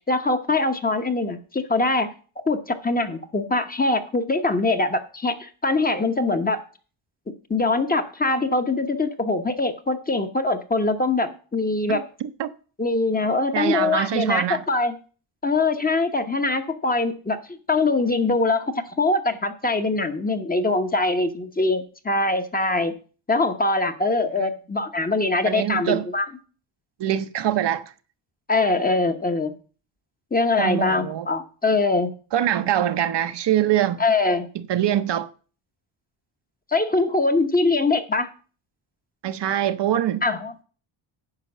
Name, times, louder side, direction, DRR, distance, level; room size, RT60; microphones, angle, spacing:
voice 1, 0.1-2.1 2.5-6.6 7.5-12.0 12.8-14.9 15.4-17.4 17.7-18.7 19.0-22.9 23.3-26.3 28.5-29.5 30.3-32.1 34.0-34.5 36.7-38.3 40.2-40.5, left 3 dB, 20° left, 0.9 m, -23 dB
voice 2, 11.9-12.5 13.5-14.6 24.4-24.5 25.4-26.1 27.0-27.8 30.6-31.3 32.3-34.0 34.5-35.3 39.2-40.2, right 11 dB, 60° right, 0.7 m, -24 dB
9.8 x 5.2 x 7.2 m
cardioid pair, 120°, 48 cm